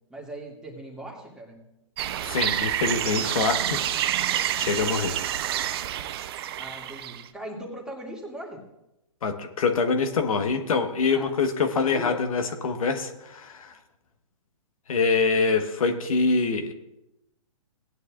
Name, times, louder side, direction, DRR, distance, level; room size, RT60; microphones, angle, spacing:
voice 1, 0.1-1.6 6.6-8.6 11.1-12.3, right 1 dB, 5° right, -2 dB, 2.2 m, -40 dB
sound 1, 2.0-7.3, right 11 dB, 45° right, 0.6 m, -28 dB
voice 2, 2.2-3.8 4.6-5.1 9.2-13.8 14.9-16.7, left 4 dB, 70° left, 5 dB, 1.3 m, -25 dB
18.5 x 9.6 x 2.4 m, 0.89 s
hypercardioid pair, 135°, 18 cm